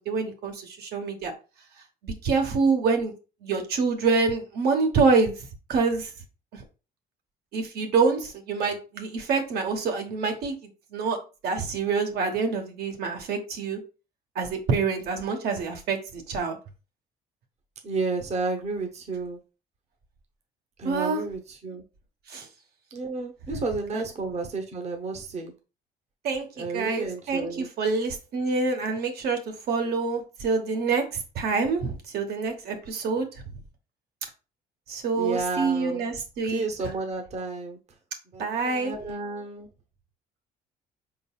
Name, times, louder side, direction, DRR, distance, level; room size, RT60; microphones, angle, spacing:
voice 1, 0.0-1.3 2.0-3.1 3.4-6.1 6.5-6.6 7.5-10.6 10.9-11.2 11.4-13.8 14.3-16.6 20.8-21.2 22.3-22.5 23.9-24.0 26.2-29.4 29.7-33.3 34.9-36.7 38.4-38.9, right 4 dB, 70° right, 4 dB, 1.1 m, -26 dB
voice 2, 17.8-19.4 20.8-21.8 22.9-25.5 26.6-27.7 35.2-36.1 36.5-37.8 38.3-39.7, right 3 dB, 40° right, 3 dB, 0.8 m, -31 dB
4.6 x 3.8 x 2.3 m, 0.32 s
cardioid pair, 110°, 17 cm